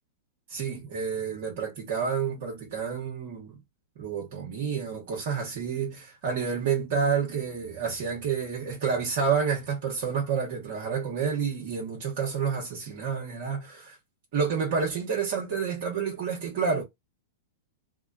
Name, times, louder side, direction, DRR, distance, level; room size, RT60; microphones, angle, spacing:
voice 1, 0.5-3.5 4.0-14.0 14.3-16.8, right 6 dB, 60° right, 1.4 m, -29 dB
3.5 x 2.3 x 2.6 m
hypercardioid pair, 120°, 0 cm